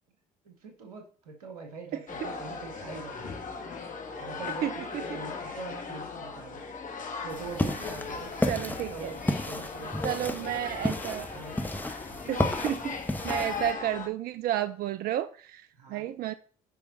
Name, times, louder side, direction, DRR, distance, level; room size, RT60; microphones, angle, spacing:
voice 1, 0.4-3.6 4.2-6.7 7.2-8.3 8.6-10.4 11.3-11.6 12.0-12.5 15.7-16.1, right 4 dB, 85° right, 1.7 m, -44 dB
sound 1, 2.1-14.1, left 5 dB, 45° left, 2.0 m, -38 dB
voice 2, 4.6-5.0 8.5-9.1 10.0-11.3 12.3-13.0 13.2-16.3, right 12 dB, 55° right, 0.5 m, -32 dB
sound 2, 7.3-13.7, left 1 dB, 10° left, 1.4 m, -33 dB
9.4 x 5.7 x 4.1 m
hypercardioid pair, 55°, 19 cm